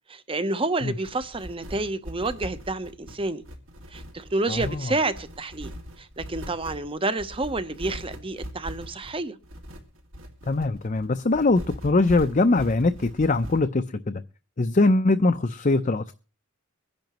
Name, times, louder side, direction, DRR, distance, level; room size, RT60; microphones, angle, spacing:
voice 1, 0.1-3.4 3.9-5.7 6.0-9.4, right 2 dB, 25° right, 0.8 m, -29 dB
sound 1, 1.0-13.6, equal, 70° right, 2.2 m, -41 dB
voice 2, 4.5-4.9 10.5-14.2 14.6-16.1, left 2 dB, 35° left, 0.6 m, -22 dB
23.0 x 10.5 x 3.0 m
head